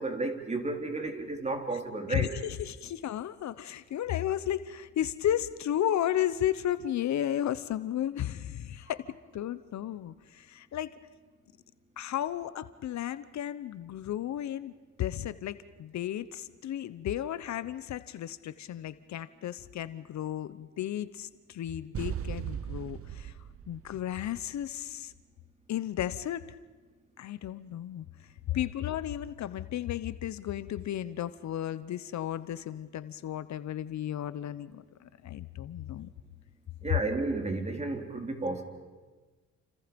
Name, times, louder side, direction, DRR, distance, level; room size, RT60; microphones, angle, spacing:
voice 1, 0.0-2.3 36.8-38.6, right 2 dB, 20° right, 4 dB, 3.6 m, -32 dB
voice 2, 2.1-9.1 9.3-10.9 12.0-14.7 15.0-23.4 23.7-25.1 25.7-26.5 27.2-28.1 28.5-36.1 36.9-37.0, left 11 dB, 65° left, 14 dB, 1.0 m, -33 dB
sound 1, 21.9-24.9, right 9 dB, 50° right, 0.9 m, -38 dB
30.0 x 27.0 x 5.3 m, 1.3 s
cardioid pair, 90°, 30 cm